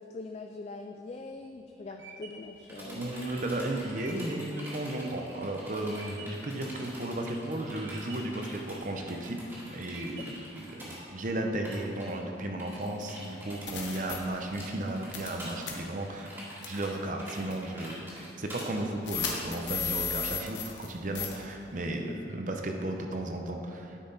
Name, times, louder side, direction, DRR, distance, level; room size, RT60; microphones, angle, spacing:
voice 1, 0.0-3.0 10.2-10.3 22.1-22.2, left 3 dB, 35° left, 4 dB, 0.3 m, -43 dB
sound 1, 1.1-6.5 7.0-7.5 7.8-8.5 9.0-9.5 9.9-10.6, right 3 dB, 85° right, 0.9 m, -49 dB
sound 2, 2.4-11.0 11.3-11.4 11.6-12.1 12.6-19.5, equal, 15° right, 1.9 m, -46 dB
voice 2, 2.8-9.4 9.7-18.1 18.4-24.0, right 1 dB, 45° right, 3 dB, 0.7 m, -34 dB
sound 3, 13.0-13.1 13.7-14.2 15.1-15.4 15.6-15.7 16.6-16.8 17.5-17.6 19.1-20.9 21.1-21.3, left 7 dB, 90° left, 1.2 m, -33 dB
10.0 x 5.9 x 4.1 m, 2.7 s
head